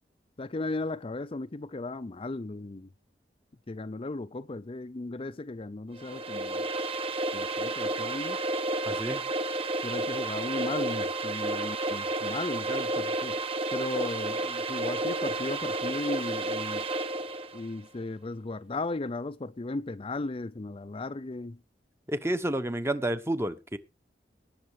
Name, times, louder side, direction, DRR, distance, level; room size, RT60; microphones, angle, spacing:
voice 1, 0.4-2.9 3.7-6.7 7.3-8.4 9.8-13.4 13.7-16.9 17.5-21.6, left 2 dB, 30° left, 0.5 m, -36 dB
sound 1, 6.0-17.6, right 2 dB, 35° right, 1.2 m, -31 dB
voice 2, 8.9-9.2 22.1-23.8, right 1 dB, 15° right, 1.1 m, -30 dB
18.5 x 6.7 x 4.9 m
head